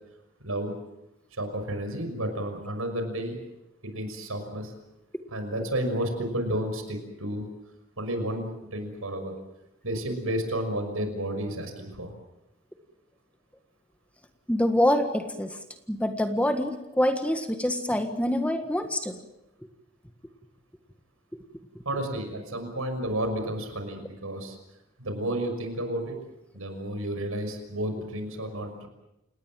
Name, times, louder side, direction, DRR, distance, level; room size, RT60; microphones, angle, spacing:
voice 1, 1.3-3.4 3.8-4.7 5.3-7.5 8.0-9.3 9.8-12.1 21.8-24.6 25.0-26.2 26.5-28.9, right 1 dB, 85° right, 7 dB, 6.1 m, -31 dB
voice 2, 14.5-15.6 15.9-19.2, left 1 dB, 5° left, 6 dB, 1.6 m, -25 dB
30.0 x 18.5 x 7.7 m, 0.90 s
head